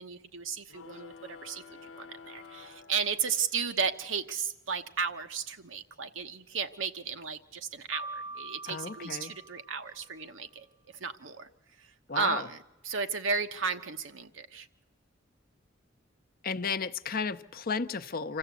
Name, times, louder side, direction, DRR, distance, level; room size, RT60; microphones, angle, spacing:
voice 1, 0.0-10.7 11.0-11.5 11.8-11.9 12.1-14.7, right 5 dB, 85° right, 8 dB, 1.1 m, -34 dB
sound 1, 0.7-3.7, left 5 dB, 80° left, 0.9 m, -50 dB
Piano, 7.9-10.1, right 2 dB, 25° right, 0.8 m, -43 dB
voice 2, 8.7-9.3 12.1-12.5 16.4-18.4, left 5 dB, 50° left, 11 dB, 0.7 m, -33 dB
26.5 x 14.5 x 8.3 m, 1.1 s
head